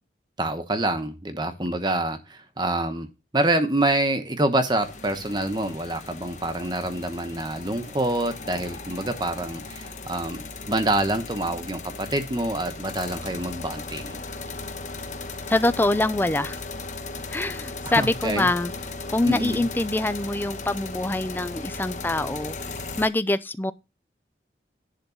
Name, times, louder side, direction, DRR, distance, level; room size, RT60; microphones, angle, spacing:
voice 1, 0.4-14.2 17.8-18.5 19.2-19.7, right 1 dB, 25° right, 1.0 m, -26 dB
sound 1, 4.8-23.1, left 3 dB, 45° left, 1.1 m, -37 dB
voice 2, 15.5-16.6 17.3-18.7 19.1-22.6 23.0-23.7, left 2 dB, 10° left, 0.4 m, -24 dB
11.0 x 3.7 x 7.0 m
head